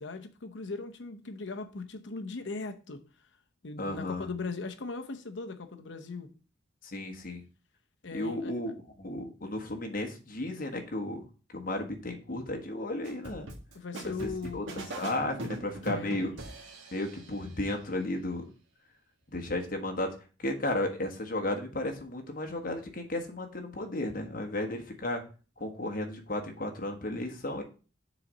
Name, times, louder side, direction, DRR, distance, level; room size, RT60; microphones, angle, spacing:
voice 1, 0.0-3.0 3.6-6.3 8.0-8.5 13.7-14.8 15.4-16.4, left 3 dB, 70° left, 0.8 m, -39 dB
voice 2, 3.8-4.3 6.8-7.4 8.1-8.7 9.0-11.2 11.5-13.5 14.5-14.6 15.0-16.3 16.9-18.4 19.3-25.2 25.6-27.6, left 1 dB, 50° left, 1.3 m, -34 dB
sound 1, 13.0-17.4, right 1 dB, 90° right, 1.6 m, -41 dB
6.9 x 4.1 x 6.1 m
head